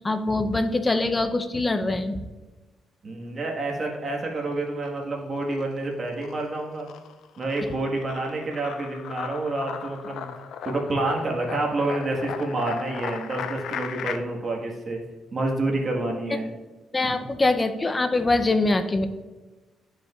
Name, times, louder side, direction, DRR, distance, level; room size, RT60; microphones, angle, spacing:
voice 1, 0.0-2.3 16.9-19.1, left 2 dB, 20° left, 8 dB, 0.6 m, -23 dB
voice 2, 3.0-6.9 7.4-10.3 10.6-15.0 15.3-16.5, right 2 dB, 40° right, 0 dB, 1.5 m, -28 dB
sound 1, 4.2-5.0 5.4-14.2, left 8 dB, 75° left, 0.4 m, -37 dB
11.5 x 5.2 x 2.4 m, 1.2 s
cardioid pair, 90°, 0 cm